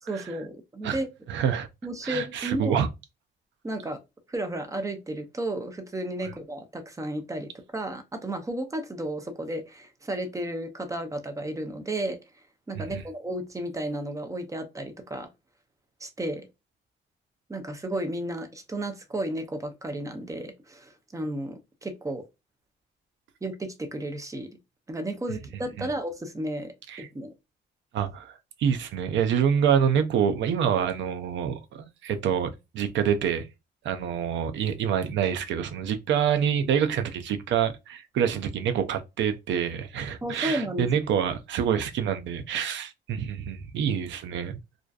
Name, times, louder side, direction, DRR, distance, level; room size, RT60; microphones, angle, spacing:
voice 1, 0.1-1.1 1.8-2.8 3.6-4.0 4.3-12.2 12.7-15.3 16.0-16.5 17.5-22.2 23.4-24.5 24.9-26.7 27.0-27.3 40.2-40.9, right 1 dB, 15° right, 0.5 m, -33 dB
voice 2, 1.3-1.7 2.0-2.9 12.8-13.0 25.8-25.9 26.9-27.1 27.9-28.3 28.6-33.5 33.8-44.6, right 8 dB, 70° right, 0.5 m, -26 dB
2.4 x 2.3 x 2.3 m
cardioid pair, 90°, 20 cm